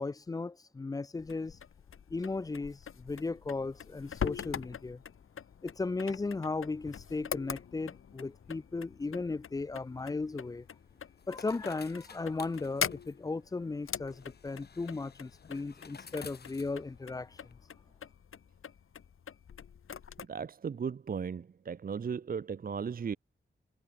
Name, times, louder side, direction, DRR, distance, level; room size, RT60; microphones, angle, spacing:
voice 1, 0.0-1.6 2.1-5.0 5.6-10.7 11.3-17.4, left 3 dB, 20° left, 0.3 m, -36 dB
sound 1, 1.2-20.3, left 7 dB, 85° left, 2.6 m, -43 dB
sound 2, 9.8-17.5, left 6 dB, 50° left, 2.3 m, -54 dB
voice 2, 20.2-23.2, right 6 dB, 45° right, 0.7 m, -36 dB
wide cardioid pair, 170°, 21 cm